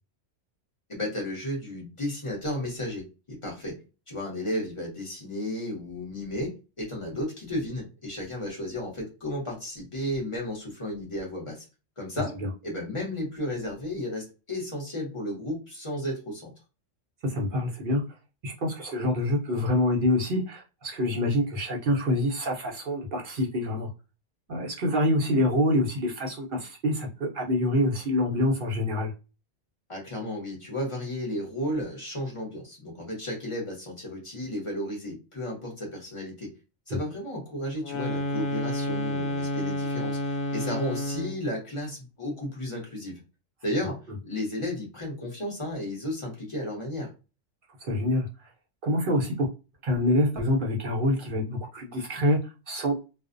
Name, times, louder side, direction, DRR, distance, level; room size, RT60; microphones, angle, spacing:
voice 1, 0.9-3.8 4.1-11.7 12.0-12.3 12.6-16.5 29.9-36.5 36.9-43.2 43.6-47.1, left 1 dB, 30° left, -2 dB, 0.8 m, -33 dB
voice 2, 17.2-18.0 18.4-23.9 24.5-29.1 36.9-37.0 47.8-48.5 48.8-49.5 49.8-53.0, left 1 dB, 55° right, -1 dB, 0.7 m, -26 dB
sound 1, 37.8-41.5, left 1 dB, 85° left, 1.0 m, -30 dB
2.4 x 2.0 x 2.5 m, 0.30 s
omnidirectional pair, 1.3 m